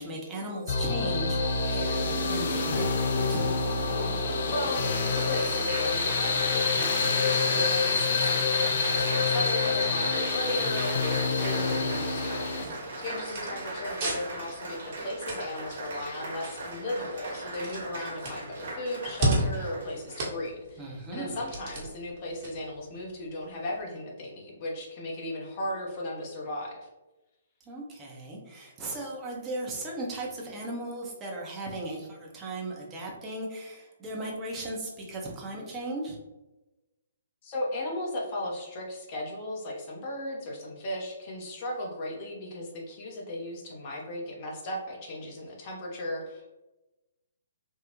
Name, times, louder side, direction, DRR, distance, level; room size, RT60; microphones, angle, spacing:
voice 1, 0.0-3.4 12.6-13.0 20.8-21.4 27.7-36.2, right 1 dB, 20° right, -3 dB, 0.9 m, -37 dB
sound 1, 0.7-12.6, left 4 dB, 60° left, 0.5 m, -27 dB
voice 2, 4.5-26.9 37.4-46.5, left 1 dB, 40° left, -2 dB, 1.0 m, -36 dB
Applause, 4.6-20.5 21.2-21.5, right 2 dB, 65° right, 1.2 m, -37 dB
sound 2, 6.9-23.8, right 1 dB, 45° right, 1.3 m, -38 dB
3.6 x 2.3 x 3.0 m, 1.0 s
hypercardioid pair, 135°, 0 cm